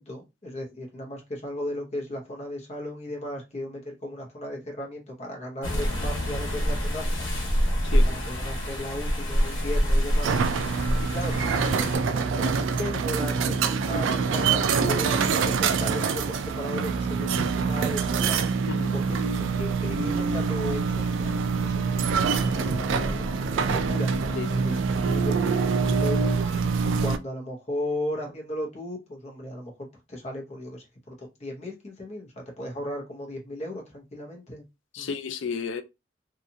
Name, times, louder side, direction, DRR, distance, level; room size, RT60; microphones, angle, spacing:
voice 1, 0.0-7.3 7.9-10.6 11.0-17.3 17.6-18.7 18.9-23.2 23.5-26.7 27.0-29.7 30.1-34.6 35.0-35.1, left 1 dB, 35° left, 0.8 m, -36 dB
sound 1, 5.6-12.0, equal, 90° left, 1.0 m, -26 dB
sound 2, 10.2-27.2, right 5 dB, 75° right, 0.3 m, -25 dB
voice 2, 34.9-35.8, left 5 dB, 70° left, 0.4 m, -31 dB
2.8 x 2.4 x 2.6 m
head